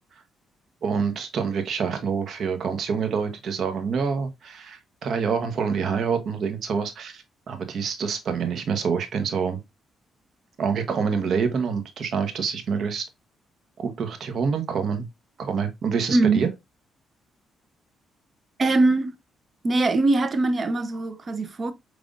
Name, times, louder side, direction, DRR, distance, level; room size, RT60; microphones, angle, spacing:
voice 1, 0.8-9.6 10.6-13.0 13.8-15.1 15.4-16.5, right 6 dB, 60° right, 1.0 m, -26 dB
voice 2, 16.1-16.4 18.6-19.1 19.6-21.7, right 2 dB, 35° right, 0.7 m, -21 dB
5.2 x 3.3 x 2.5 m
cardioid pair, 90°, 0 cm